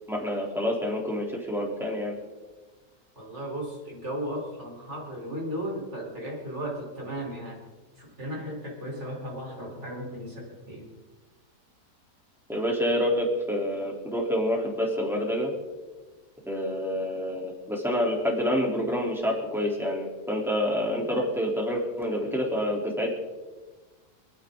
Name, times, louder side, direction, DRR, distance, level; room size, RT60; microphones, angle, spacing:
voice 1, 0.1-2.1 12.5-15.5 16.4-23.1, equal, ahead, -2 dB, 3.5 m, -27 dB
voice 2, 3.2-7.6 8.0-10.9, equal, 40° right, -2 dB, 4.5 m, -35 dB
27.5 x 10.0 x 3.9 m, 1.3 s
omnidirectional pair, 1.8 m